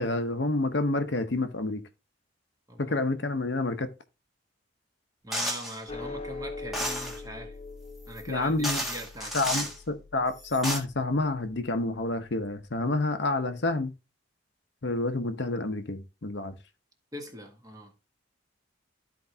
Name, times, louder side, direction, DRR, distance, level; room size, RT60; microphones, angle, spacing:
voice 1, 0.0-1.8 2.8-3.9 8.3-8.8 9.3-13.9 14.8-16.5, left 2 dB, 60° left, 0.9 m, -28 dB
voice 2, 5.2-7.6 8.1-9.7 17.1-17.9, equal, 20° right, 1.6 m, -42 dB
sound 1, 5.3-5.8 6.7-7.2 8.2-8.3 8.6-9.8 10.4-10.8, equal, ahead, 1.5 m, -31 dB
sound 2, 5.9-12.4, left 3 dB, 30° left, 0.8 m, -43 dB
13.0 x 4.6 x 2.8 m
head